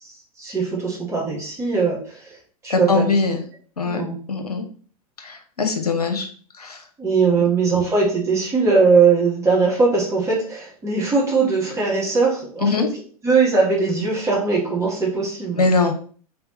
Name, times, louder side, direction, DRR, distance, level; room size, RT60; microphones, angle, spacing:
voice 1, 0.4-2.3 2.6-3.1 3.9-4.2 7.0-12.9 13.2-15.6, right 4 dB, 15° right, -4 dB, 1.6 m, -20 dB
voice 2, 2.7-3.4 3.8-4.0 4.3-4.6 5.2-6.3 6.6-6.8 12.6-12.9 15.6-15.9, left 4 dB, 80° left, 4 dB, 0.9 m, -21 dB
3.7 x 3.4 x 3.1 m, 0.44 s
figure-of-eight pair, 100°, 20 cm